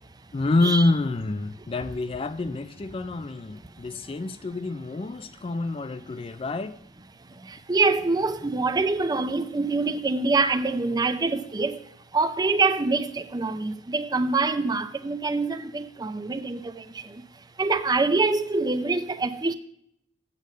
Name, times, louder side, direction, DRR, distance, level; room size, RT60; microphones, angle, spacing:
voice 1, 0.3-6.8, left 2 dB, 30° left, 0.4 m, -27 dB
voice 2, 7.7-11.8 12.1-16.6 17.6-19.5, right 3 dB, 20° right, 0.5 m, -25 dB
8.4 x 7.8 x 6.5 m
head